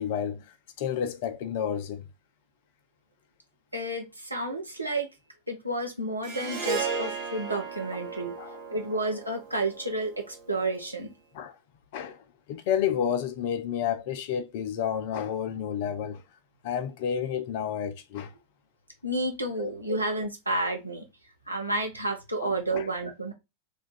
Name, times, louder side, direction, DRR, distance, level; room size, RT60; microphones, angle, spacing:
voice 1, 0.0-2.0 4.5-4.6 6.9-7.1 8.4-8.6 11.3-11.5 11.9-16.2 16.6-18.3 19.6-19.7 22.4-22.9, left 8 dB, 50° left, 0.5 m, -31 dB
voice 2, 3.7-5.1 5.5-8.3 8.7-11.1 19.0-21.0 21.5-23.3, right 2 dB, 85° right, 0.9 m, -31 dB
Harp, 6.2-10.7, right 5 dB, 55° right, 0.9 m, -35 dB
3.1 x 2.4 x 4.0 m
figure-of-eight pair, 90°, 0 cm